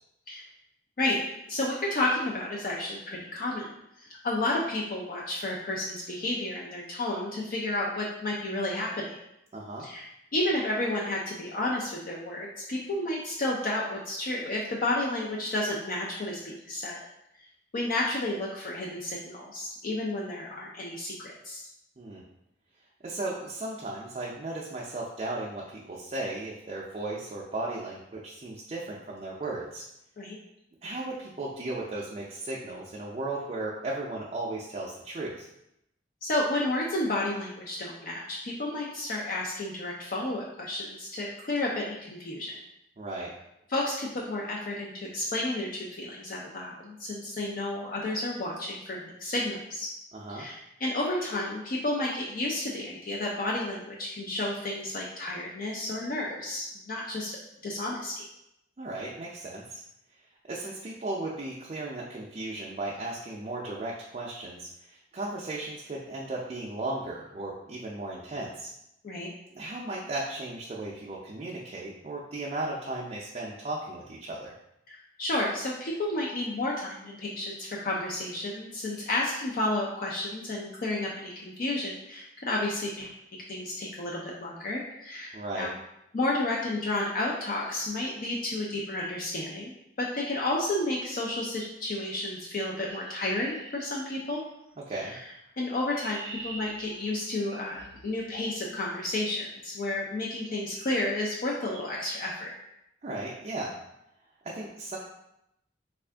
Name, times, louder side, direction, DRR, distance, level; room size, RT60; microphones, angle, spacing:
voice 1, 1.5-3.7 4.0-9.2 9.8-17.0 17.7-21.7 30.2-30.4 36.2-42.6 43.7-49.9 50.3-57.4 57.6-58.2 69.0-69.3 74.9-85.7 86.1-94.4 95.0-95.2 95.6-102.5, left 1 dB, 50° left, -3 dB, 0.4 m, -31 dB
voice 2, 9.5-9.9 22.0-22.2 23.0-29.9 30.8-35.5 43.0-43.3 50.1-50.5 58.8-59.8 60.5-68.7 69.5-74.5 85.3-85.7 94.9-95.1 103.0-103.8 104.4-105.0, right 2 dB, 35° right, -4 dB, 0.4 m, -36 dB
Chirp tweet, 92.9-94.5 95.5-98.7 99.8-100.1 100.6-100.9 101.2-101.4 101.7-102.0, right 3 dB, 75° right, 0.7 m, -45 dB
3.5 x 2.4 x 3.3 m, 0.82 s
head